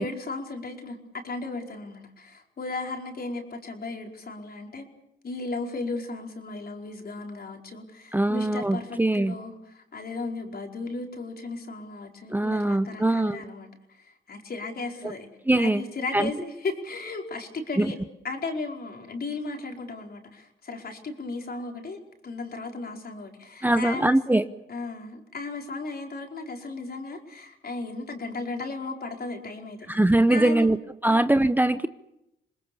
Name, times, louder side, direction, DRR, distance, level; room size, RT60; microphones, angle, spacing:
voice 1, 0.0-4.9 5.2-15.3 15.6-17.9 18.2-24.2 24.7-29.9 30.3-30.7 31.1-31.2, left 3 dB, 50° left, 2 dB, 4.9 m, -35 dB
voice 2, 8.1-9.3 12.3-13.4 15.5-15.8 16.1-16.3 17.8-17.9 23.6-24.4 29.9-30.8 31.0-31.9, right 1 dB, 10° right, 12 dB, 0.8 m, -22 dB
27.5 x 20.0 x 7.1 m, 0.87 s
cardioid pair, 70°, 21 cm